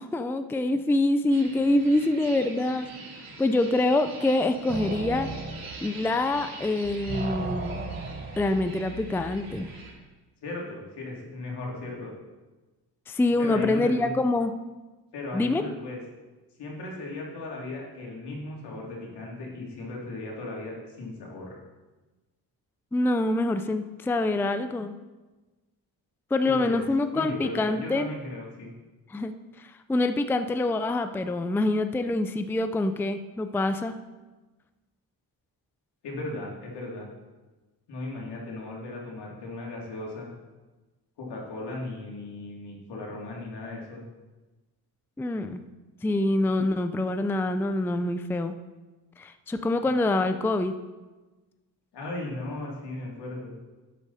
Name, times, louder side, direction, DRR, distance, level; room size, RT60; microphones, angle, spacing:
voice 1, 0.0-2.9 3.4-5.3 5.8-7.9 8.4-9.7 13.1-14.5 15.3-15.6 22.9-25.0 26.3-28.1 29.1-29.3 29.6-34.0 45.2-45.6 46.0-48.5 49.2-50.8, left 2 dB, 5° left, 9 dB, 0.4 m, -25 dB
sound 1, 1.3-9.9, right 3 dB, 55° right, 3.7 m, -44 dB
sound 2, 4.7-6.6 6.8-9.8, right 3 dB, 25° right, 0.9 m, -37 dB
voice 2, 10.4-12.1 13.4-14.1 15.1-16.0 16.6-21.6 26.4-26.8 27.1-28.7 36.0-37.1 37.9-40.3 41.2-44.0 51.9-53.6, left 2 dB, 80° left, -2 dB, 3.1 m, -36 dB
11.5 x 8.4 x 4.2 m, 1.2 s
cardioid pair, 110°, 40 cm